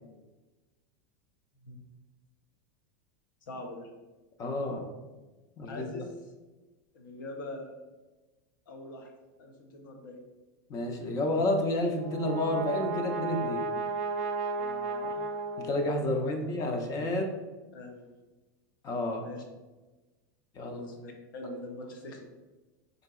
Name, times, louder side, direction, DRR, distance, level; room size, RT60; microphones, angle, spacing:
voice 1, 3.5-3.9 5.7-6.0 6.9-7.7 8.7-9.1 9.4-10.2 14.6-15.2 17.3-17.4 17.7-18.1 19.2-19.4 20.6-22.3, left 2 dB, 90° left, 3 dB, 0.7 m, -43 dB
voice 2, 4.4-4.9 5.6-6.0 10.7-13.7 15.6-17.3 18.8-19.2 20.6-20.8, left 1 dB, 35° left, 4 dB, 0.4 m, -30 dB
Brass instrument, 11.9-16.3, right 3 dB, 55° right, 0.4 m, -34 dB
3.8 x 2.8 x 2.3 m, 1.2 s
supercardioid pair, 130°, 10 cm